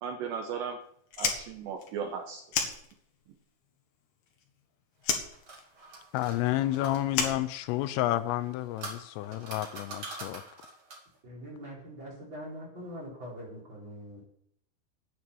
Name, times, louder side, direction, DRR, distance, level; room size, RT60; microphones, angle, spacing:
voice 1, 0.0-0.8 1.2-2.4, right 6 dB, 75° right, 4 dB, 2.8 m, -36 dB
Fire, 1.1-3.4 3.6-4.6 5.0-8.2, left 6 dB, 60° left, 1.9 m, -33 dB
sound 1, 5.0-7.4 8.3-11.2, right 3 dB, 40° right, 1.9 m, -45 dB
voice 2, 6.1-10.4, left 14 dB, 85° left, 12 dB, 3.2 m, -30 dB
voice 3, 11.2-14.2, equal, 25° right, -4 dB, 4.7 m, -43 dB
9.6 x 9.5 x 7.0 m, 0.68 s
omnidirectional pair, 5.9 m